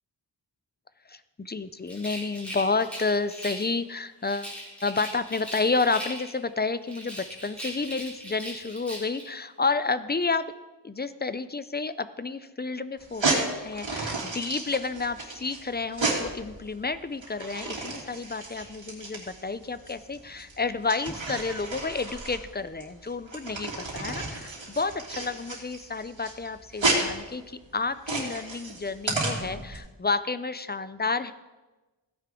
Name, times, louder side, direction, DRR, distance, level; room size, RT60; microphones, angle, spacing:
voice 1, 1.1-4.5 4.8-10.5 10.8-31.3, left 4 dB, 20° left, 13 dB, 0.5 m, -30 dB
Rattle, 1.8-3.8 4.2-6.5 6.9-9.3, equal, 5° left, 3.6 m, -39 dB
sound 1, 13.0-29.8, right 2 dB, 75° right, 2.8 m, -32 dB
16.5 x 9.5 x 3.7 m, 1.1 s
wide cardioid pair, 80°, 46 cm